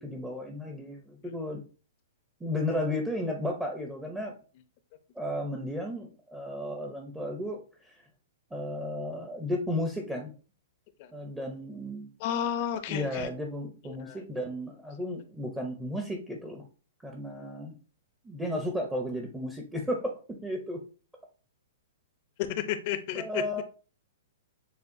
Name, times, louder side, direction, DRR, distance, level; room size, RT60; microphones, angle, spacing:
voice 1, 0.0-1.6 2.4-4.3 5.2-8.0 8.5-10.3 11.1-12.1 12.9-16.6 17.0-17.8 18.2-20.8 23.1-23.6, left 1 dB, 5° right, 1 dB, 0.6 m, -34 dB
voice 2, 12.2-13.3 13.8-14.2 22.4-23.6, left 10 dB, 40° left, 10 dB, 0.6 m, -32 dB
6.9 x 2.4 x 2.6 m, 0.36 s
hypercardioid pair, 155°, 0 cm